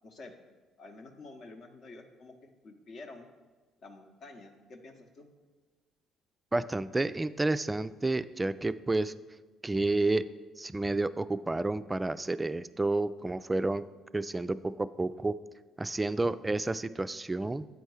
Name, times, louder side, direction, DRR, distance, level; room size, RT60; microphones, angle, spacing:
voice 1, 0.0-0.3 0.8-3.3 3.8-5.3, left 3 dB, 55° left, 4 dB, 0.9 m, -49 dB
voice 2, 6.5-9.1 9.6-10.2 10.6-13.9 14.1-15.3 15.8-17.7, right 2 dB, 20° right, 14 dB, 0.3 m, -30 dB
8.1 x 4.4 x 4.8 m, 1.4 s
hypercardioid pair, 50°, 0 cm